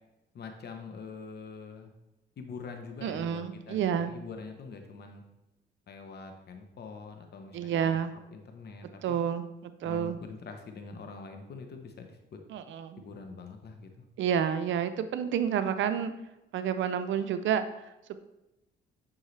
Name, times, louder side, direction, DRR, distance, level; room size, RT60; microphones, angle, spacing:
voice 1, 0.3-1.9 2.4-5.2 5.9-8.0 8.3-9.2 9.8-12.4 13.0-14.0, left 4 dB, 55° left, 5 dB, 1.0 m, -44 dB
voice 2, 3.0-4.1 7.5-8.1 9.0-10.2 12.5-13.0 14.2-16.1 16.5-17.6, right 8 dB, 70° right, 10 dB, 0.5 m, -29 dB
9.6 x 5.5 x 3.3 m, 0.96 s
cardioid pair, 90°, 20 cm